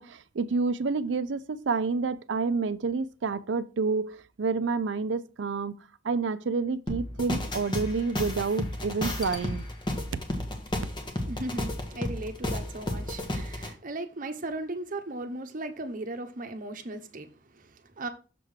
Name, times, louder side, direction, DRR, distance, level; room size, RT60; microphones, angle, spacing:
voice 1, 0.0-5.7 6.0-9.6, right 4 dB, 75° right, 0.5 m, -29 dB
sound 1, 6.9-13.7, left 1 dB, 25° left, 1.3 m, -32 dB
voice 2, 11.3-18.1, right 2 dB, 45° right, 0.9 m, -37 dB
6.8 x 3.6 x 6.3 m
head